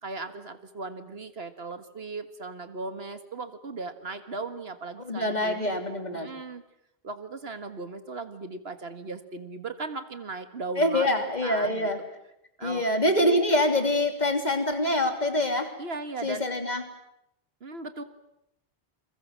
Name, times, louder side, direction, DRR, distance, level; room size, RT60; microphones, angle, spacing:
voice 1, 0.0-5.7 6.1-6.6 7.0-11.9 12.6-12.8 13.2-13.3 15.8-16.4 17.6-18.0, right 3 dB, 70° right, 10 dB, 1.9 m, -37 dB
voice 2, 5.0-6.3 10.8-12.0 12.6-15.7 16.2-16.8, left 1 dB, 40° left, 5 dB, 3.3 m, -25 dB
29.5 x 22.5 x 7.5 m, 0.81 s
omnidirectional pair, 1.1 m